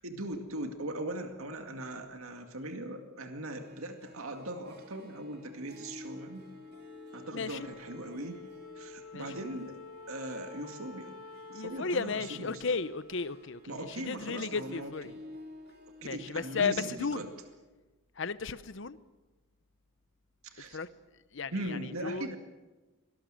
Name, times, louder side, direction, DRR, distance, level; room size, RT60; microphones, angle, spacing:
voice 1, 0.0-6.5 7.1-8.4 8.8-9.8 10.1-11.1 11.5-12.6 13.7-14.9 16.0-17.3 20.4-20.8 21.5-22.4, right 1 dB, 80° right, 5 dB, 2.2 m, -40 dB
Harp, 3.6-17.6, left 1 dB, 45° right, 2.8 m, -53 dB
Wind instrument woodwind instrument, 6.1-14.7, left 4 dB, 85° left, 2.5 m, -50 dB
voice 2, 7.3-7.7 9.1-9.4 11.5-15.1 16.0-17.2 18.2-19.0 20.7-20.9 21.3-22.4, left 4 dB, 60° left, 15 dB, 0.8 m, -34 dB
24.5 x 19.5 x 7.7 m, 1.2 s
head